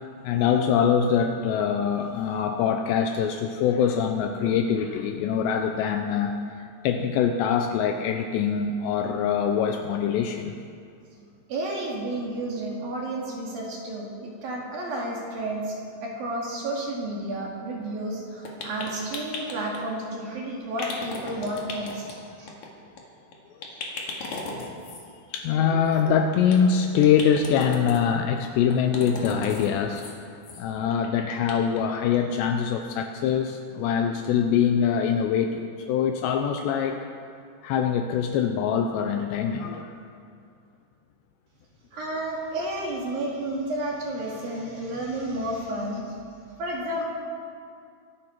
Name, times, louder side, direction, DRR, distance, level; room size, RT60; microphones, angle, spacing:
voice 1, 0.2-6.4 6.8-10.6 24.6-24.8 25.3-30.1 30.3-37.1 37.6-39.9, left 7 dB, 85° left, 5 dB, 2.5 m, -24 dB
voice 2, 11.5-22.5 41.9-46.2 46.6-47.0, right 1 dB, 55° right, -2 dB, 3.3 m, -31 dB
sound 1, 18.4-19.8 20.8-22.1 22.5-22.7 23.0-23.1 23.3-23.4 23.6-25.0 25.9-26.5 26.9-28.0 28.7-29.7 29.9-30.1 30.4-30.6 30.9-31.8 32.1-32.2 32.6-32.7, left 3 dB, 55° left, 2.3 m, -36 dB
24.5 x 11.5 x 4.5 m, 2.3 s
omnidirectional pair, 5.7 m